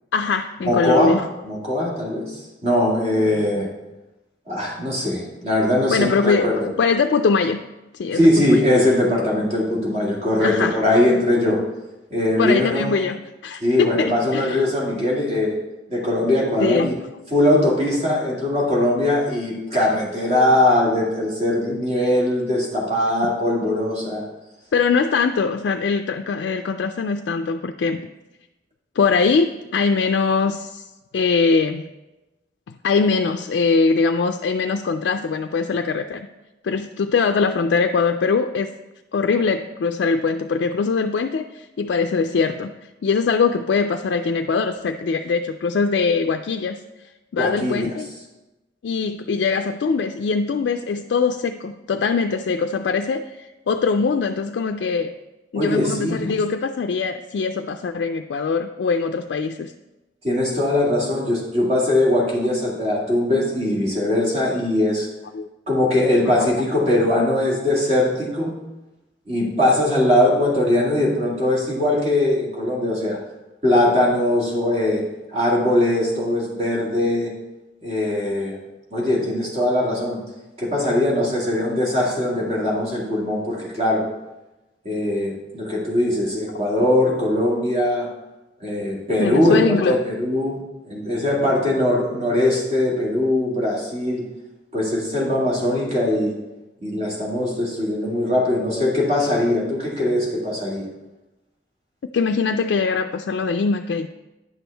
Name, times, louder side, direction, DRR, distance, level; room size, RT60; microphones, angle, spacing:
voice 1, 0.1-1.3 5.9-7.6 8.0-8.6 10.4-10.8 12.4-14.6 16.6-17.0 24.7-28.0 29.0-30.8 31.1-31.9 32.8-36.3 36.6-38.7 39.1-42.7 43.0-46.8 47.3-48.1 48.8-55.1 55.5-59.7 65.3-65.5 89.2-90.0 102.1-104.1, left 4 dB, 70° left, 6 dB, 0.3 m, -22 dB
voice 2, 0.7-1.2 1.4-3.7 4.5-6.7 8.1-11.6 12.1-12.9 13.6-15.6 15.9-17.0 17.3-24.2 47.4-47.9 55.6-56.3 60.2-65.1 65.7-68.5 69.3-73.2 73.6-75.0 75.3-77.3 77.8-78.6 78.9-80.2 80.6-84.0 84.8-88.1 88.6-90.6 90.9-94.2 94.7-96.4 96.8-100.9, left 1 dB, 35° right, -3 dB, 1.9 m, -21 dB
9.9 x 6.1 x 3.4 m, 1.0 s
head